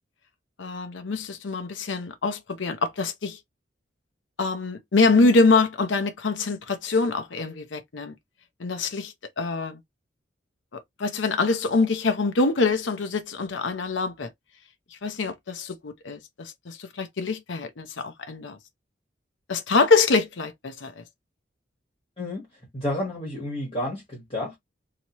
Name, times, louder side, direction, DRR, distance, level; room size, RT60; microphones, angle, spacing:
voice 1, 0.6-3.4 4.4-8.1 8.6-9.8 10.7-14.3 15.0-18.6 19.5-21.0, left 3 dB, 80° left, 0.7 m, -24 dB
voice 2, 22.7-24.6, left 1 dB, 30° left, 1.5 m, -30 dB
3.0 x 2.8 x 2.9 m
head